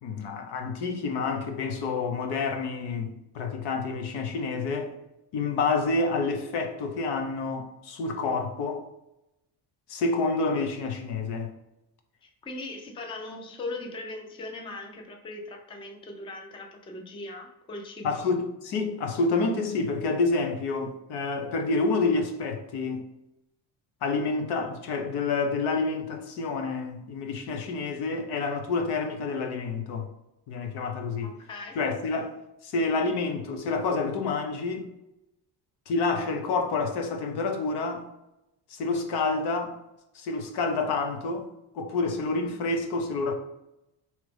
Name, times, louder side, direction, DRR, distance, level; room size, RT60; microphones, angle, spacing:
voice 1, 0.0-4.9 5.3-8.8 9.9-11.5 18.0-23.1 24.0-30.1 30.5-31.3 31.7-32.4 32.6-34.9 35.9-38.0 38.7-39.8 40.1-41.5 41.7-43.3, left 3 dB, 80° left, 0.9 m, -28 dB
voice 2, 12.2-18.2 31.2-31.8, left 2 dB, 15° left, 0.4 m, -39 dB
4.8 x 2.9 x 3.3 m
cardioid pair, 175°, 40 cm